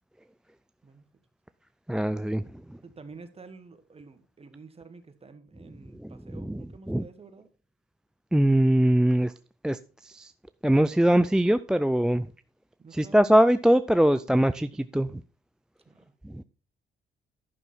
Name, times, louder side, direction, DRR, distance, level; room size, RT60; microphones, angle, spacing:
voice 1, 1.9-2.8 6.0-7.1 8.3-9.3 9.6-10.3 10.6-12.3 12.9-15.2 16.2-16.4, right 1 dB, 5° right, 0.3 m, -23 dB
voice 2, 2.8-7.5 12.8-13.2 15.8-16.1, right 4 dB, 30° right, 1.5 m, -49 dB
11.0 x 6.0 x 4.4 m
cardioid pair, 90°, 20 cm